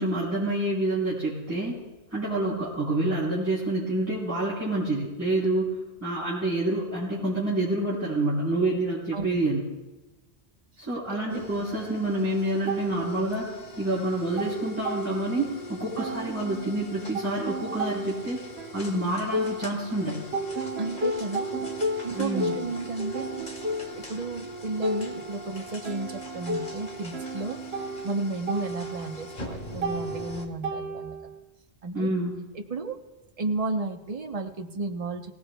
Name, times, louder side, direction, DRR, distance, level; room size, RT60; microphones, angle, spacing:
voice 1, 0.0-1.8 2.1-9.6 10.8-18.4 18.7-20.2 22.1-22.5 31.9-32.3, right 1 dB, 15° right, -10 dB, 3.8 m, -28 dB
voice 2, 9.1-9.4 11.3-11.5 20.8-21.7 22.0-23.5 24.0-27.6 28.0-31.3 31.8-32.1 32.5-33.0 33.4-35.3, right 3 dB, 40° right, 5 dB, 1.0 m, -33 dB
sound 1, 11.3-30.5, equal, 50° left, 1.7 m, -42 dB
sound 2, 12.7-13.8 14.1-15.6 16.0-20.0 20.3-31.4, right 1 dB, 90° right, 1.2 m, -34 dB
23.5 x 16.5 x 2.3 m, 1.1 s
omnidirectional pair, 1.1 m